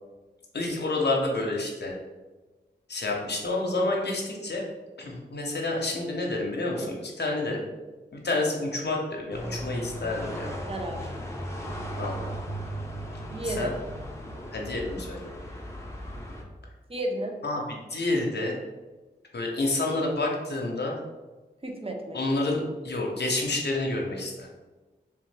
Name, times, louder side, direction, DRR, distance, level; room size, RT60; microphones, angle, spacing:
voice 1, 0.5-1.9 2.9-4.6 5.0-7.6 8.1-10.5 12.0-12.4 13.4-13.7 14.5-15.3 17.4-17.6 17.9-18.6 19.3-21.0 22.1-24.5, left 2 dB, 65° left, -1 dB, 0.8 m, -29 dB
sound 1, 9.3-16.4, equal, 15° left, 0.9 m, -36 dB
voice 2, 10.7-11.0 13.3-13.7 16.9-17.3 21.6-22.2, right 1 dB, 30° right, 2 dB, 0.8 m, -32 dB
3.5 x 3.4 x 3.3 m, 1.2 s
cardioid pair, 40°, 19 cm